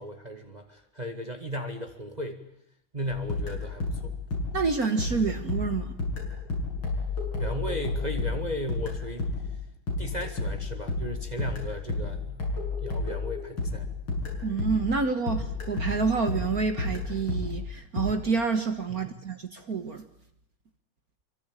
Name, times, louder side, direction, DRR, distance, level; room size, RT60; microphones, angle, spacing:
voice 1, 0.0-2.4 2.9-4.2 7.4-9.3 10.0-12.4 12.8-13.9 18.9-19.2, equal, 20° right, 5 dB, 2.1 m, -36 dB
sound 1, 3.3-15.0 15.3-18.1, left 3 dB, 85° left, 8.0 m, -31 dB
voice 2, 4.5-5.9 14.4-20.0, right 5 dB, 50° right, 7 dB, 1.9 m, -28 dB
27.0 x 24.5 x 9.0 m, 0.73 s
omnidirectional pair, 2.2 m